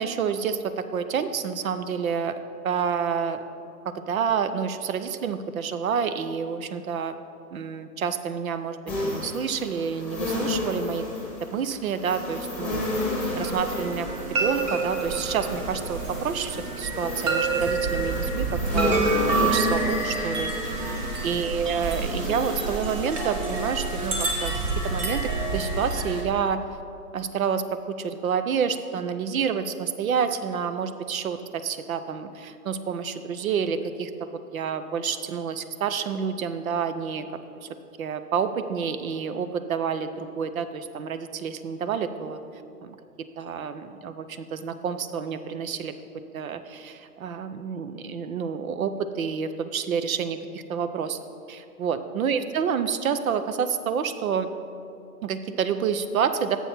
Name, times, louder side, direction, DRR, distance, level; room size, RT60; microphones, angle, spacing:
voice 1, 0.0-2.3 2.6-3.4 3.8-7.1 7.5-8.8 9.0-11.0 11.5-12.8 13.4-18.5 18.7-19.0 19.4-20.5 21.2-24.5 24.8-26.6 27.1-34.1 34.5-37.3 37.6-37.7 38.0-42.4 42.8-43.0 43.4-45.9 46.3-51.2 51.5-54.5 55.2-56.6, right 7 dB, 60° right, 10 dB, 0.7 m, -28 dB
sound 1, 8.9-23.0, left 1 dB, 5° left, 1.6 m, -32 dB
sound 2, 13.3-26.2, right 3 dB, 20° right, 0.8 m, -28 dB
7.1 x 6.3 x 5.7 m, 2.5 s
hypercardioid pair, 140°, 46 cm